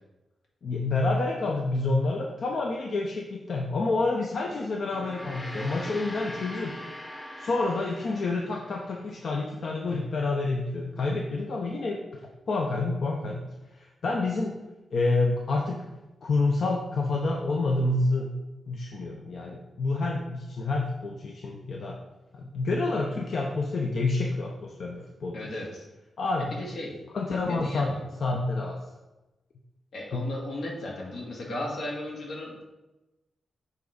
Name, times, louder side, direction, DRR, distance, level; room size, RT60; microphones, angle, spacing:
voice 1, 0.6-6.8 7.4-12.0 12.5-13.4 14.0-14.5 14.9-15.8 16.2-18.3 18.7-22.0 22.3-25.5 26.2-26.6 27.1-28.0 28.2-28.8 30.1-30.3, left 3 dB, 55° left, 0 dB, 0.8 m, -28 dB
Gong, 4.8-9.4, left 1 dB, 15° left, 0.9 m, -42 dB
voice 2, 25.3-25.9 26.4-27.0 27.5-28.0 29.9-32.7, left 1 dB, 80° left, -3 dB, 2.1 m, -36 dB
7.4 x 4.0 x 5.0 m, 1.0 s
wide cardioid pair, 145°, 0 cm